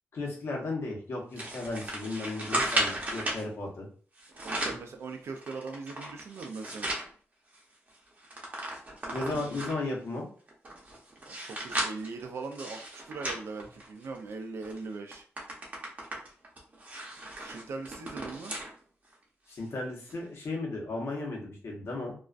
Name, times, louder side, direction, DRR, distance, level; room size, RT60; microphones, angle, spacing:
voice 1, 0.1-3.9 9.1-10.3 19.5-22.1, left 2 dB, 60° left, -1 dB, 0.9 m, -35 dB
sound 1, 1.4-3.4 4.2-4.9 5.4-7.1 7.5-7.6 7.9-9.9 10.5-14.2 14.6-14.8 15.1-18.7 19.1-19.2 20.1-20.2, right 1 dB, 30° right, 0.7 m, -35 dB
voice 2, 4.4-6.9 9.0-9.5 11.3-15.2 17.2-18.5, right 4 dB, 65° right, 5 dB, 0.3 m, -40 dB
2.3 x 2.2 x 2.4 m, 0.44 s
cardioid pair, 105°, 5 cm